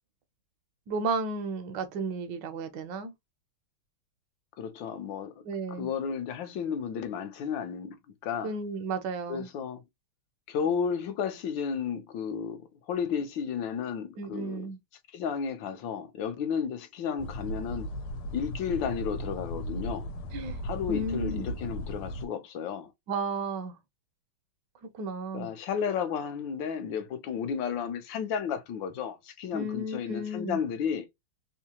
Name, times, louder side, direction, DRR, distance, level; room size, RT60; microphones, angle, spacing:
voice 1, 0.9-3.1 5.4-5.9 8.4-9.5 14.2-14.8 20.3-20.6 20.9-21.5 23.1-23.8 24.8-25.5 29.5-30.6, right 3 dB, 65° right, 1.2 m, -33 dB
voice 2, 4.6-5.3 5.8-8.0 8.2-8.5 9.3-9.8 10.5-14.6 15.1-17.9 18.3-20.1 20.6-22.9 25.3-31.1, left 7 dB, 70° left, 1.4 m, -33 dB
sound 1, 17.2-22.3, equal, 85° left, 1.6 m, -36 dB
3.7 x 2.7 x 2.8 m
omnidirectional pair, 2.3 m